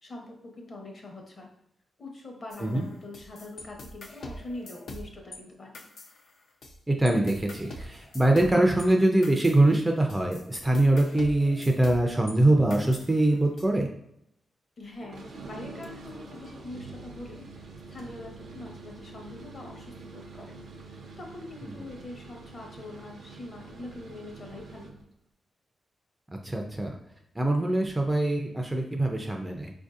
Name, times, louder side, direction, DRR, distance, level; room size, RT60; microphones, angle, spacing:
voice 1, 0.0-1.5 2.0-5.8 14.8-24.9, left 2 dB, 45° left, 1 dB, 0.8 m, -43 dB
sound 1, 2.5-5.4 5.7-6.8 7.1-12.4 12.7-13.7, left 1 dB, 70° left, 0.5 m, -44 dB
voice 2, 6.9-13.9 26.4-27.0 27.4-29.7, right 1 dB, 15° right, 2 dB, 0.4 m, -23 dB
sound 2, 15.0-25.0, right 3 dB, 70° right, 0.5 m, -45 dB
4.4 x 2.6 x 2.4 m, 0.75 s
cardioid pair, 110°, 0 cm